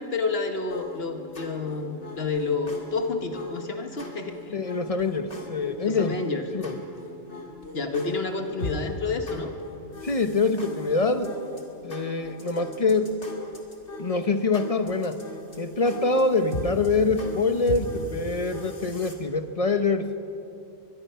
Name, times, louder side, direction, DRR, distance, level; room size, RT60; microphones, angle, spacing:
voice 1, 0.0-4.6 5.8-6.4 7.7-9.5, left 4 dB, 60° left, 5 dB, 1.7 m, -29 dB
sound 1, 0.7-19.1, left 1 dB, 75° left, 2.8 m, -39 dB
voice 2, 4.5-6.2 6.5-6.8 10.0-11.3 11.8-13.1 14.0-15.2 15.6-20.1, left 3 dB, 35° left, 9 dB, 1.0 m, -25 dB
23.0 x 22.0 x 5.7 m, 2.9 s
omnidirectional pair, 1.2 m